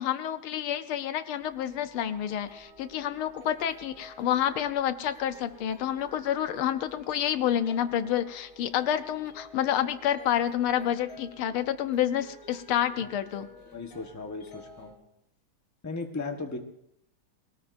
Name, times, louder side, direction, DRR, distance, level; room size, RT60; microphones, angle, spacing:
voice 1, 0.0-13.5, left 10 dB, 85° left, 10 dB, 1.7 m, -29 dB
sound 1, 1.4-15.0, left 1 dB, 60° left, 3.2 m, -52 dB
voice 2, 13.7-14.9 15.8-16.6, left 3 dB, 10° left, 3 dB, 1.0 m, -36 dB
23.5 x 18.0 x 2.6 m, 0.76 s
omnidirectional pair, 2.3 m